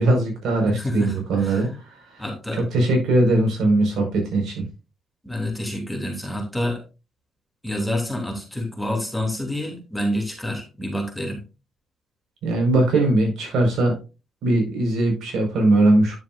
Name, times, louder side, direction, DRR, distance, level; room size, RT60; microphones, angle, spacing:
voice 1, 0.0-2.2 2.5-4.6 12.4-13.9 14.4-16.2, right 2 dB, 75° right, 2 dB, 5.2 m, -20 dB
voice 2, 0.7-1.7 2.2-2.6 5.2-6.8 7.6-11.4, left 1 dB, 5° left, 2 dB, 3.0 m, -28 dB
10.5 x 7.3 x 2.6 m, 0.29 s
cardioid pair, 90°, 0 cm